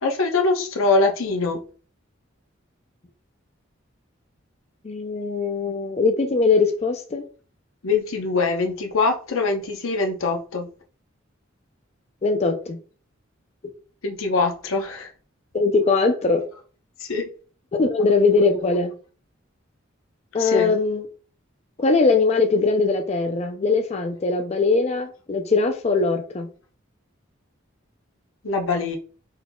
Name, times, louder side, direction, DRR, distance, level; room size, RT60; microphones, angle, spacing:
voice 1, 0.0-1.6 7.8-10.7 14.0-15.1 17.1-17.3 20.4-20.8 28.4-29.0, left 3 dB, 90° left, 0.8 m, -23 dB
voice 2, 4.8-7.2 12.2-12.8 15.5-16.4 17.8-18.9 20.3-21.1 21.8-26.5, left 4 dB, 30° left, 0.4 m, -21 dB
4.3 x 3.8 x 2.3 m
head